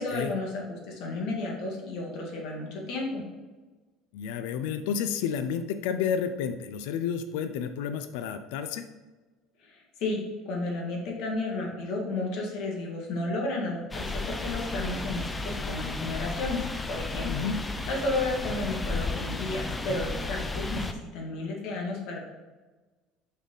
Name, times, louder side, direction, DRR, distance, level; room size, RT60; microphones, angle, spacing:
voice 1, 0.0-3.2 9.6-10.2 10.5-16.6 16.9-17.4 17.9-22.2, left 2 dB, 65° left, -1 dB, 2.0 m, -32 dB
voice 2, 4.1-8.8 17.3-17.6, left 7 dB, 90° left, 9 dB, 0.5 m, -31 dB
sound 1, 13.9-20.9, left 3 dB, 10° left, 0.5 m, -33 dB
6.3 x 5.4 x 4.0 m, 1.3 s
cardioid pair, 145°, 0 cm